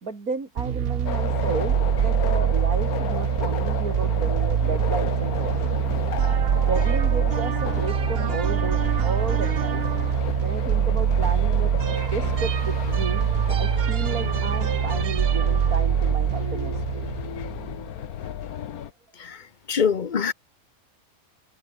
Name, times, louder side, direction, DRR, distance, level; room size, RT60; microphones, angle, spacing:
voice 1, 0.0-5.8 6.7-9.8 10.4-11.7 12.1-13.2 13.6-17.1, right 3 dB, 80° right, 3.7 m, -33 dB
sound 1, 0.6-17.9, right 9 dB, 50° right, 0.9 m, -24 dB
sound 2, 1.1-18.9, left 9 dB, 85° left, 1.5 m, -34 dB
voice 2, 19.7-20.3, left 6 dB, 35° left, 1.0 m, -24 dB
omnidirectional pair, 1.5 m